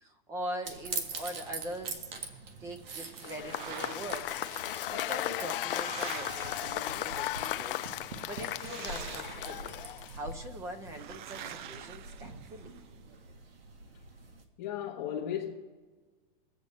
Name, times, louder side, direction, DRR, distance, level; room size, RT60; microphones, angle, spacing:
voice 1, 0.0-2.1 2.6-4.3 4.9-7.9 8.3-9.8 10.1-12.8, equal, 10° right, 0.5 m, -42 dB
sound 1, 0.7-14.4, right 4 dB, 75° right, 1.6 m, -44 dB
sound 2, 3.1-4.4 5.2-7.4 8.4-9.9 10.9-12.8, right 10 dB, 55° right, 0.6 m, -46 dB
Cheering / Applause / Crowd, 3.2-10.3, left 13 dB, 65° left, 0.5 m, -36 dB
voice 2, 14.6-15.5, left 9 dB, 30° left, 1.0 m, -35 dB
22.0 x 8.2 x 4.2 m
supercardioid pair, 165°, 29 cm